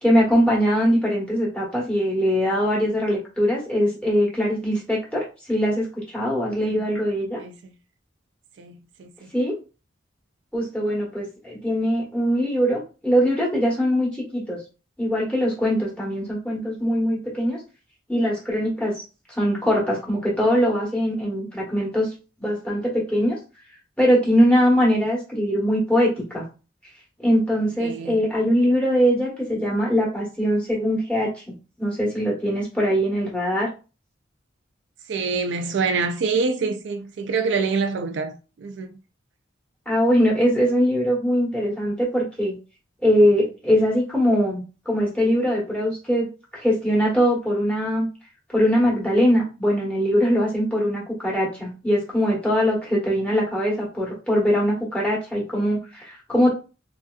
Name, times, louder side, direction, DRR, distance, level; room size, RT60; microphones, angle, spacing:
voice 1, 0.0-5.2 5.5-7.4 9.3-9.5 10.5-14.6 15.0-17.6 18.1-18.9 19.3-22.1 22.4-23.4 24.0-26.4 27.2-31.3 31.8-33.7 39.9-42.6 43.0-48.1 48.5-56.5, equal, 5° left, 1.1 m, -22 dB
voice 2, 7.4-7.7 8.6-9.3 27.8-28.2 35.1-39.0, right 4 dB, 70° right, 0.4 m, -26 dB
3.2 x 2.7 x 2.3 m
head